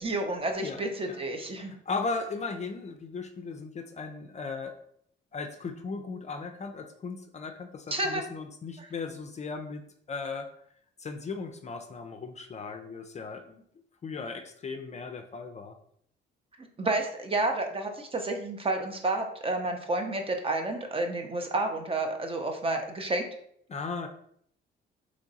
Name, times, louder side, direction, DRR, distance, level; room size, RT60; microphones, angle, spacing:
voice 1, 0.0-1.7 7.9-8.2 8.8-8.9 16.8-23.2, right 2 dB, 30° right, 4 dB, 0.6 m, -30 dB
voice 2, 0.6-1.2 1.6-4.7 5.3-10.5 11.0-13.6 14.0-15.7 23.7-24.1, left 4 dB, 35° left, 6 dB, 0.4 m, -37 dB
3.1 x 2.5 x 3.9 m, 0.66 s
cardioid pair, 90°, 20 cm